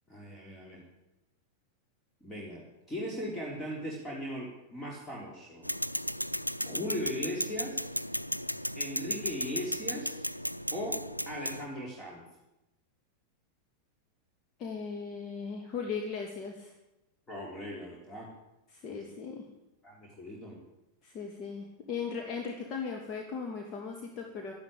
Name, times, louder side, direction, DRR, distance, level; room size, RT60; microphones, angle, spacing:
voice 1, 0.1-0.8 2.2-5.7 6.6-7.9 8.8-10.3 10.7-12.2 17.3-18.3 18.9-19.0 19.8-20.6, equal, 15° left, -3 dB, 4.1 m, -39 dB
sound 1, 5.6-11.7, equal, 90° right, 0.5 m, -35 dB
voice 2, 14.6-16.7 18.7-19.5 21.0-24.5, left 5 dB, 35° left, 2 dB, 2.4 m, -38 dB
12.5 x 12.0 x 8.9 m, 0.94 s
figure-of-eight pair, 90°, 0 cm